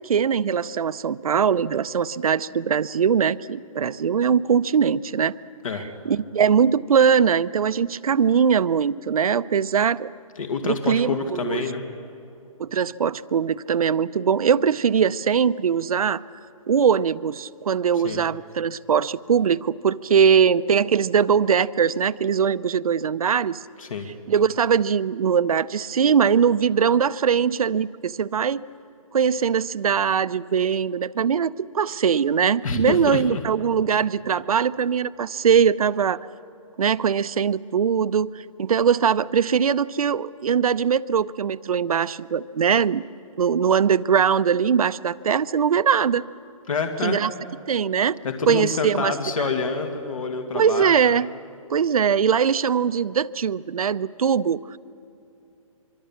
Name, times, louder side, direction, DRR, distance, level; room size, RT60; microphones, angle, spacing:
voice 1, 0.0-5.4 6.1-10.1 10.6-11.6 12.6-16.2 16.7-23.6 24.3-28.6 29.1-36.2 36.8-38.3 38.6-43.0 43.4-46.2 47.0-47.3 47.7-48.2 48.5-49.1 50.5-51.3 51.7-54.8, right 7 dB, 80° right, 16 dB, 0.7 m, -21 dB
voice 2, 10.4-11.8 17.9-18.2 23.8-24.1 32.6-33.4 46.7-47.2 48.2-51.1, left 4 dB, 70° left, 5 dB, 2.2 m, -27 dB
25.0 x 24.0 x 7.3 m, 2.7 s
hypercardioid pair, 170°, 18 cm